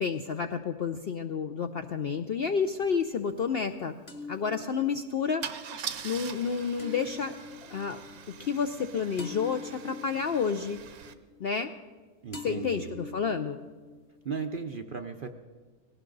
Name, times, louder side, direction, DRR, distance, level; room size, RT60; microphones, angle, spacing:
voice 1, 0.0-3.9 4.3-5.4 6.0-7.3 7.6-8.0 8.4-10.8 11.4-11.7 12.4-13.6, left 6 dB, 65° left, 7 dB, 0.6 m, -30 dB
sound 1, 1.6-2.4 4.1-12.0 12.3-14.4, left 5 dB, 30° left, 1.2 m, -46 dB
Car / Engine starting / Idling, 2.8-2.9 3.2-3.4 5.4-11.1, right 7 dB, 75° right, 1.3 m, -43 dB
voice 2, 12.2-12.9 14.2-15.3, right 5 dB, 50° right, 6 dB, 0.6 m, -36 dB
19.5 x 17.0 x 3.9 m, 1.4 s
omnidirectional pair, 1.6 m